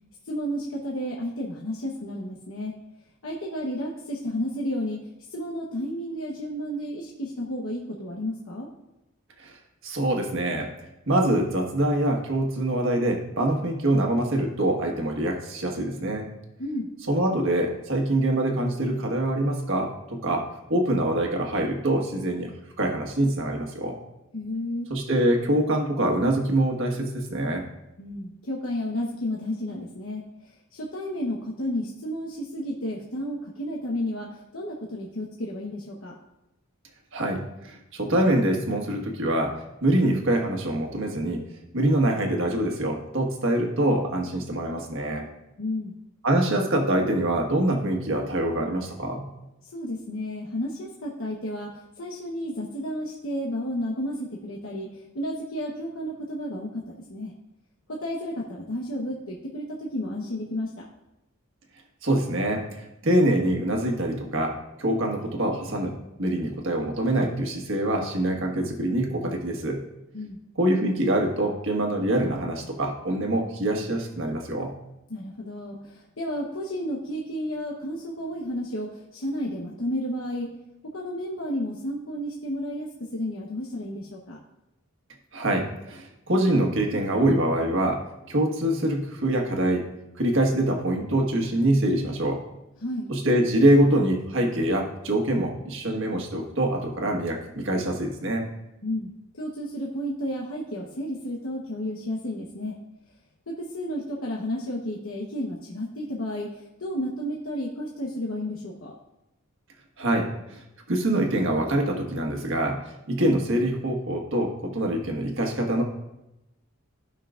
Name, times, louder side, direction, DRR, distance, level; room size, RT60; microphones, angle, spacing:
voice 1, 0.2-2.7 3.2-5.0 5.3-8.7 16.6-16.9 24.3-24.9 28.0-36.2 45.6-45.9 49.6-57.3 57.9-60.8 70.1-70.4 75.1-80.5 80.8-84.4 92.8-93.1 98.8-102.8 103.5-109.0, left 1 dB, 70° left, -2 dB, 1.1 m, -32 dB
voice 2, 9.8-10.7 11.1-16.3 17.1-22.5 22.8-23.9 24.9-27.6 37.1-41.4 41.7-45.3 46.2-49.3 62.0-69.8 70.6-74.7 85.3-88.0 88.3-89.8 90.2-92.4 93.1-98.4 110.0-110.6 110.9-115.8, right 1 dB, 65° right, 2 dB, 1.5 m, -25 dB
15.0 x 5.7 x 2.5 m, 0.91 s
head